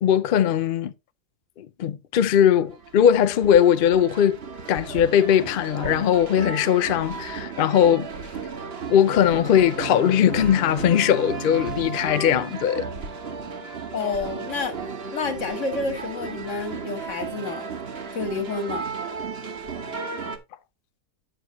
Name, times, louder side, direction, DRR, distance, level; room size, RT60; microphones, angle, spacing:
voice 1, 0.0-0.9 1.6-4.4 4.7-8.1 8.9-12.8, left 9 dB, 85° left, 0.4 m, -20 dB
london-tunnel-by-festival-hall-south-bank, 2.7-20.4, right 5 dB, 45° right, 1.2 m, -35 dB
Bowed string instrument, 8.8-12.4, left 1 dB, 85° right, 2.2 m, -37 dB
voice 2, 13.9-14.7 15.1-17.7 18.1-18.8, left 4 dB, 50° left, 1.7 m, -29 dB
9.0 x 6.3 x 3.0 m
omnidirectional pair, 1.6 m